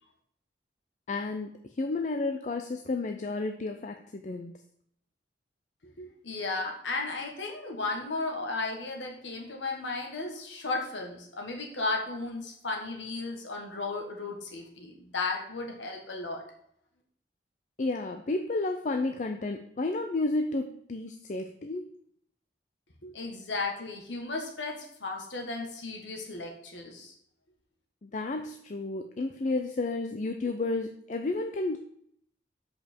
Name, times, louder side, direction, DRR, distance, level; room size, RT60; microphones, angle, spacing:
voice 1, 1.1-1.5 1.8-4.5 17.8-21.9 28.0-31.8, left 2 dB, 40° left, 6 dB, 0.5 m, -31 dB
voice 2, 6.0-16.4 23.0-27.1, left 3 dB, 85° left, 1 dB, 1.5 m, -35 dB
7.2 x 5.2 x 4.4 m, 0.70 s
head